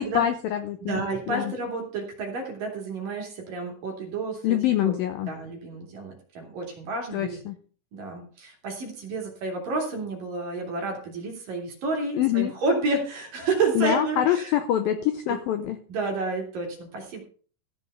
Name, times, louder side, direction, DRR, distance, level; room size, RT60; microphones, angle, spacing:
voice 1, 0.0-1.5 4.4-5.3 7.1-7.6 12.1-12.5 13.7-15.8, left 11 dB, 90° left, 9 dB, 2.0 m, -25 dB
voice 2, 0.8-4.6 4.8-4.9 5.3-7.4 7.9-14.5 15.9-17.2, right 3 dB, 55° right, 1 dB, 3.9 m, -30 dB
14.5 x 5.5 x 6.7 m, 0.42 s
omnidirectional pair, 5.1 m